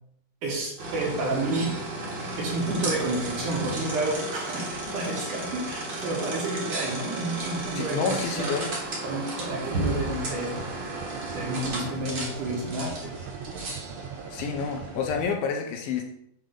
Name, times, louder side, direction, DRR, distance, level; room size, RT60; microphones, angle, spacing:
voice 1, 0.4-1.7 2.4-8.5 9.0-10.7 11.3-13.1, right 2 dB, 65° right, -1 dB, 2.3 m, -30 dB
sound 1, 0.8-15.2, right 2 dB, 45° right, 1.5 m, -34 dB
voice 2, 7.7-8.7 14.3-16.0, left 6 dB, 80° left, 3 dB, 2.2 m, -29 dB
sound 2, 9.7-15.3, right 6 dB, 85° right, 2.5 m, -41 dB
7.6 x 3.4 x 5.0 m, 0.74 s
omnidirectional pair, 4.5 m